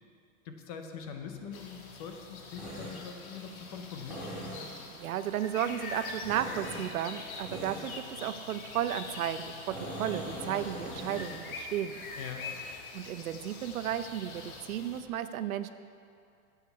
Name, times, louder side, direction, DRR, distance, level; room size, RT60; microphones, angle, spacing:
voice 1, 0.4-4.3 12.2-12.5, left 6 dB, 30° left, 5 dB, 0.6 m, -43 dB
Tools, 1.0-15.1, equal, 5° right, 2.9 m, -46 dB
sound 1, 1.5-15.0, left 3 dB, 85° left, 1.6 m, -44 dB
voice 2, 4.9-12.0 12.9-15.7, right 10 dB, 80° right, 12 dB, 0.7 m, -34 dB
9.3 x 8.1 x 5.7 m, 2.4 s
supercardioid pair, 165°, 41 cm